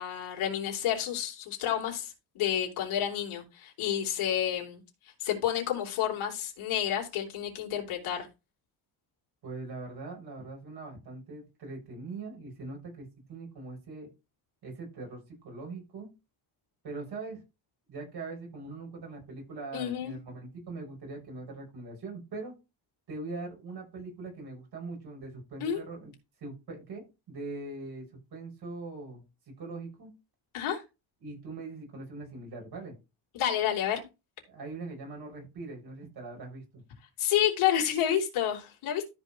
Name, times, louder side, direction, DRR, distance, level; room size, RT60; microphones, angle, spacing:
voice 1, 0.0-4.8 5.2-8.3 19.7-20.2 25.6-25.8 30.5-30.8 33.3-34.0 37.2-39.1, left 10 dB, 90° left, 0 dB, 3.2 m, -30 dB
voice 2, 9.4-14.1 14.6-16.1 16.8-17.4 17.9-22.5 23.1-26.1 26.4-29.2 29.6-30.1 31.2-32.9 34.5-36.8, right 3 dB, 50° right, 1 dB, 7.0 m, -41 dB
13.0 x 5.2 x 4.6 m, 0.26 s
cardioid pair, 145°, 48 cm